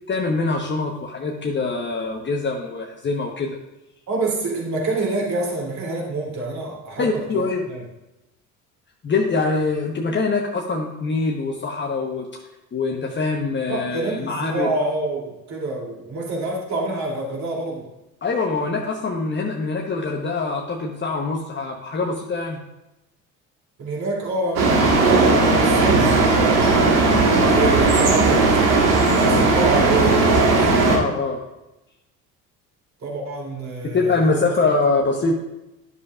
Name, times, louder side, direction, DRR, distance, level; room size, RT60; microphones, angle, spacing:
voice 1, 0.1-3.6 7.0-7.6 9.0-12.3 12.7-14.7 18.2-22.6 30.9-31.4 33.8-35.4, left 3 dB, 25° left, 0 dB, 1.0 m, -24 dB
voice 2, 4.1-7.8 13.7-17.9 23.8-26.6 27.3-30.3 33.0-34.4, right 2 dB, 40° right, -2 dB, 2.9 m, -27 dB
sound 1, 24.6-31.0, right 3 dB, 75° right, 1.7 m, -17 dB
11.0 x 6.8 x 2.4 m, 0.95 s
hypercardioid pair, 65°, 43 cm